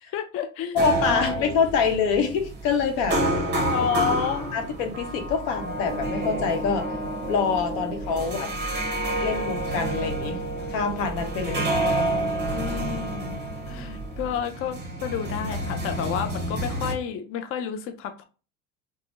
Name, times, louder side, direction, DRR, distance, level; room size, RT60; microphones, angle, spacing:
voice 1, 0.1-0.8 1.1-1.6 3.7-4.6 8.2-8.6 11.8-13.4 13.7-18.2, left 8 dB, 35° left, 6 dB, 0.4 m, -31 dB
voice 2, 0.7-3.4 4.5-6.9 7.3-8.5 9.2-10.4 10.7-11.7, left 6 dB, 75° left, 5 dB, 0.9 m, -25 dB
sound 1, 0.8-17.0, right 1 dB, 25° right, 0.8 m, -29 dB
3.4 x 2.1 x 2.5 m, 0.35 s
hypercardioid pair, 90°, 39 cm